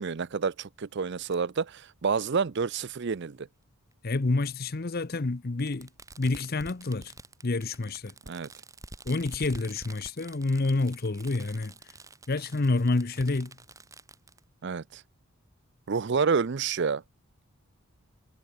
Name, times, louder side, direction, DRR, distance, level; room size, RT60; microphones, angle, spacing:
voice 1, 0.0-3.5 8.3-8.5 14.6-15.0 15.9-17.0, right 5 dB, 50° right, 0.5 m, -29 dB
Fireworks, 1.3-1.4 2.6-2.7 3.9-4.0 5.7-14.4, right 2 dB, 15° right, 4.5 m, -48 dB
voice 2, 4.0-5.9 6.2-7.1 7.4-8.1 9.0-11.7 12.3-13.5, left 3 dB, 45° left, 0.7 m, -28 dB
head